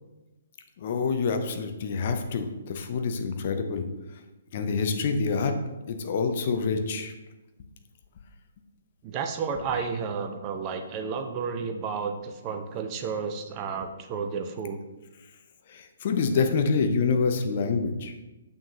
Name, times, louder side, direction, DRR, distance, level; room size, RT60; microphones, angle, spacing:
voice 1, 0.8-3.8 4.5-5.5 5.9-7.1 15.7-18.1, left 5 dB, 45° left, 7 dB, 0.7 m, -26 dB
voice 2, 9.0-14.8, right 5 dB, 25° right, 6 dB, 0.6 m, -32 dB
6.6 x 5.9 x 2.9 m, 1.1 s
figure-of-eight pair, 125°, 0 cm